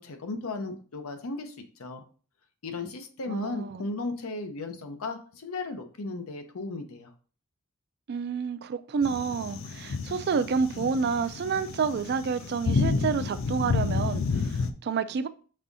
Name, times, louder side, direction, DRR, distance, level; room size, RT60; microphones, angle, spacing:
voice 1, 0.0-1.5 1.8-2.0 2.6-7.1, left 3 dB, 90° left, 0.8 m, -35 dB
voice 2, 3.3-3.8 8.1-15.3, right 5 dB, 50° right, 0.3 m, -29 dB
sound 1, 9.0-14.7, left 4 dB, 65° left, 0.4 m, -30 dB
5.4 x 3.5 x 2.7 m
head